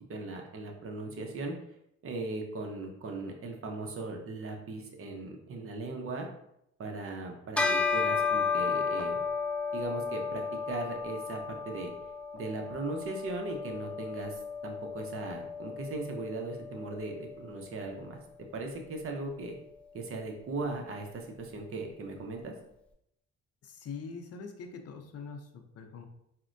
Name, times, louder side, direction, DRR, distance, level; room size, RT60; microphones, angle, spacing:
voice 1, 0.1-1.5 2.0-6.3 6.8-9.2 9.7-11.9 12.3-18.2 18.5-19.6 19.9-22.5, right 2 dB, 45° right, 2 dB, 0.7 m, -38 dB
Bell, 7.6-17.2, left 5 dB, 5° left, 0.4 m, -33 dB
voice 2, 23.6-26.1, left 5 dB, 55° left, 5 dB, 0.6 m, -43 dB
4.1 x 2.1 x 2.5 m, 0.77 s
cardioid pair, 90°, 30 cm